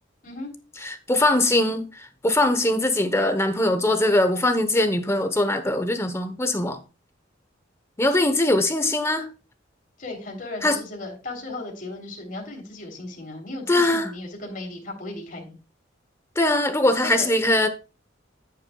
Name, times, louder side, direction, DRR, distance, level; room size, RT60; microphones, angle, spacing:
voice 1, 0.8-6.8 8.0-9.3 10.6-10.8 13.7-14.1 16.4-17.7, left 1 dB, 15° left, 1.0 m, -21 dB
voice 2, 10.0-15.6 17.0-17.3, left 2 dB, 45° left, 3.4 m, -36 dB
10.5 x 8.8 x 2.3 m
head